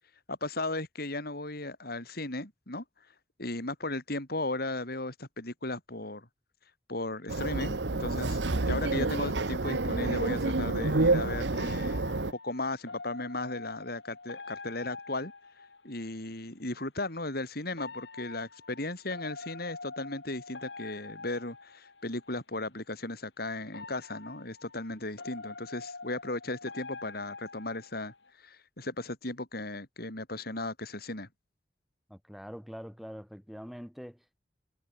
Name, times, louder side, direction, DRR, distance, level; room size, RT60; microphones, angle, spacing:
voice 1, 0.3-2.8 3.4-6.3 6.9-12.2 12.4-15.3 15.8-31.3, left 2 dB, 60° left, 5.5 m, -36 dB
sound 1, 7.3-12.3, right 2 dB, 90° right, 1.3 m, -28 dB
sound 2, 11.5-16.1 17.7-22.3 23.7-28.3, left 3 dB, 85° left, 3.9 m, -46 dB
voice 2, 32.1-34.4, equal, ahead, 5.6 m, -44 dB
head